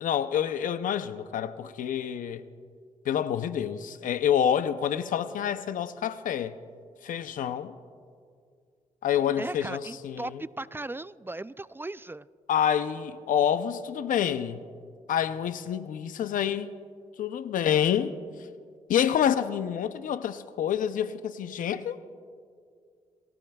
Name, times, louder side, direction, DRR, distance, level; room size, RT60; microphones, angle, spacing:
voice 1, 0.0-2.4 3.1-6.6 7.0-7.8 9.0-10.4 12.5-14.7 15.1-16.7 17.2-18.2 18.9-22.0, left 9 dB, 85° left, 0.6 m, -27 dB
voice 2, 9.4-12.3, right 2 dB, 15° right, 0.3 m, -37 dB
28.0 x 15.5 x 2.3 m
cardioid pair, 65°, 13 cm